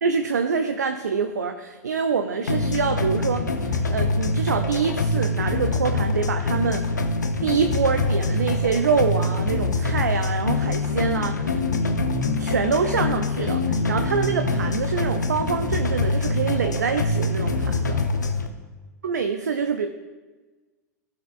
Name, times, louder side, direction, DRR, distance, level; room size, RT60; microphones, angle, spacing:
voice 1, 0.0-6.8 7.4-11.6 12.4-18.0 19.0-19.9, right 5 dB, 70° right, 7 dB, 0.6 m, -25 dB
sound 1, 2.5-18.5, left 2 dB, 75° left, 0.8 m, -24 dB
16.0 x 5.5 x 2.5 m, 1.3 s
figure-of-eight pair, 95°, 10 cm